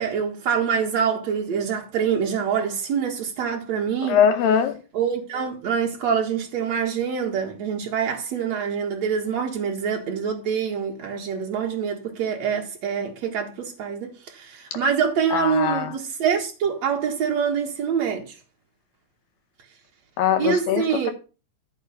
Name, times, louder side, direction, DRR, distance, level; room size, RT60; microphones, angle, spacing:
voice 1, 0.0-4.2 4.9-18.4 20.4-21.1, right 7 dB, 55° right, 1.9 m, -25 dB
voice 2, 4.0-4.8 14.7-14.8 15.3-15.9 20.2-21.1, left 8 dB, 80° left, 2.1 m, -21 dB
14.5 x 4.9 x 6.8 m
omnidirectional pair, 5.3 m